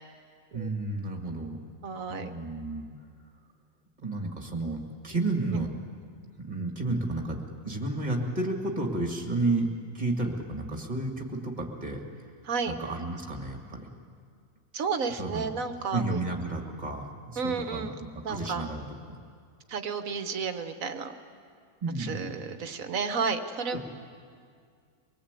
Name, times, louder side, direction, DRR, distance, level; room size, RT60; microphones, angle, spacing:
voice 1, 0.5-1.6 2.1-2.9 4.0-5.7 6.4-12.0 12.7-13.9 15.2-15.5 15.9-17.9 18.3-19.2 21.8-22.3 23.7-23.8, right 2 dB, 25° right, 2 dB, 2.4 m, -32 dB
voice 2, 1.8-2.3 5.5-5.6 12.5-12.7 14.7-16.2 17.4-18.0 18.2-18.7 19.7-21.1 22.0-23.8, right 5 dB, 60° right, 8 dB, 1.5 m, -32 dB
24.0 x 19.5 x 8.3 m, 2.2 s
omnidirectional pair, 1.6 m